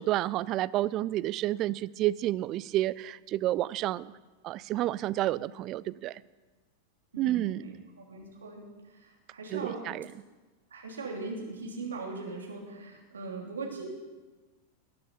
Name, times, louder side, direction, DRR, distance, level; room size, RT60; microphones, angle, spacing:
voice 1, 0.0-4.1 4.4-6.2 7.2-7.8 9.5-10.1, right 14 dB, 35° right, 18 dB, 0.4 m, -30 dB
voice 2, 7.1-9.8 10.7-13.8, right 3 dB, 70° right, -1 dB, 3.1 m, -40 dB
20.0 x 9.4 x 4.3 m, 1.2 s
figure-of-eight pair, 90°, 0 cm